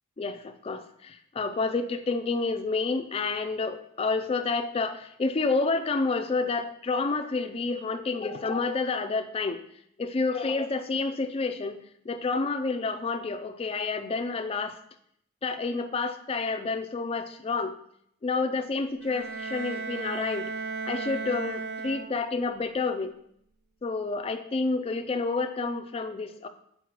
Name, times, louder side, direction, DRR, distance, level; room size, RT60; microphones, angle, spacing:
voice 1, 0.2-9.6 10.0-14.8 15.4-17.8 18.2-20.5 20.8-23.2 23.8-26.5, left 3 dB, 25° left, 8 dB, 0.3 m, -29 dB
Bowed string instrument, 19.0-22.5, right 4 dB, 45° right, 0.6 m, -35 dB
7.5 x 4.5 x 2.9 m, 0.74 s
head